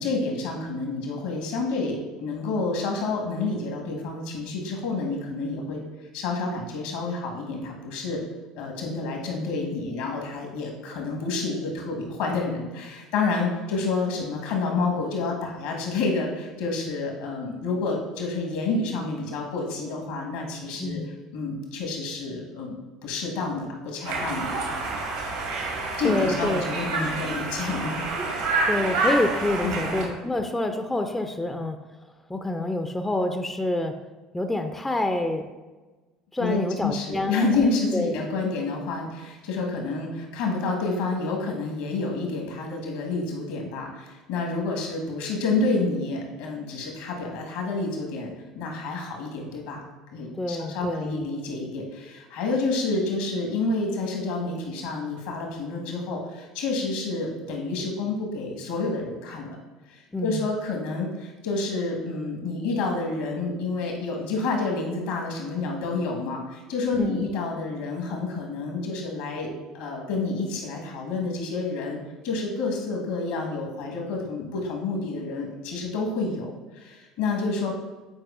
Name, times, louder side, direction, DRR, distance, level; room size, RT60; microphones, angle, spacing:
voice 1, 0.0-5.8 6.1-8.2 8.5-21.0 21.3-22.7 23.0-24.5 26.0-28.0 29.6-29.9 36.4-48.3 48.5-49.8 50.1-59.6 59.9-76.5 76.8-77.7, left 3 dB, 65° left, 1 dB, 1.3 m, -29 dB
voice 2, 20.8-21.1 26.0-26.7 28.7-31.8 32.3-34.0 34.3-35.5 36.3-37.5 37.9-38.1 50.3-51.3 60.1-60.4 67.0-67.3, left 1 dB, 10° left, 6 dB, 0.4 m, -27 dB
Conversation, 24.0-30.0, right 3 dB, 70° right, 1.3 m, -28 dB
8.5 x 4.6 x 2.5 m, 1.2 s
figure-of-eight pair, 65°, 2 cm